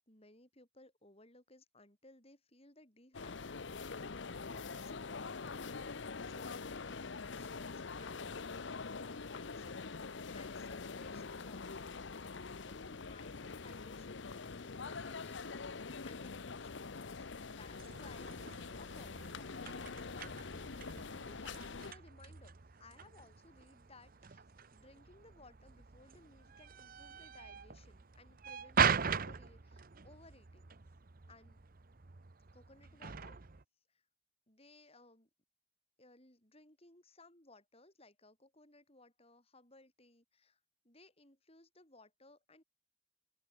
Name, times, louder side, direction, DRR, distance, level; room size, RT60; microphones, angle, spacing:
voice 1, 0.0-3.8 4.4-5.7 6.3-8.6 8.9-11.9 12.4-24.4 24.7-30.7 31.3-31.6 32.5-33.4 33.9-34.0 34.5-35.3 36.0-40.6 40.8-42.6, left 2 dB, 30° left, 6.8 m, -62 dB
sound 1, 3.1-21.9, left 4 dB, 60° left, 0.8 m, -44 dB
sound 2, 17.8-33.6, right 6 dB, 45° right, 0.9 m, -41 dB
open air
head